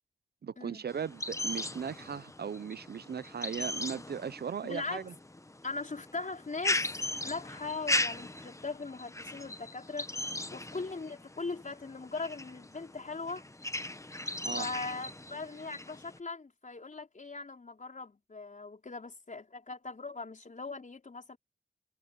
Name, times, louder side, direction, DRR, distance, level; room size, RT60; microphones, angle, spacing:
voice 1, 0.4-5.1 14.4-14.7, right 7 dB, 65° right, 0.6 m, -37 dB
sound 1, 0.9-16.2, left 2 dB, 15° left, 1.0 m, -38 dB
voice 2, 4.6-5.0 5.6-6.9 7.2-10.1 10.5-13.4 14.5-21.4, left 3 dB, 45° left, 4.9 m, -40 dB
cardioid pair, 60°, 18 cm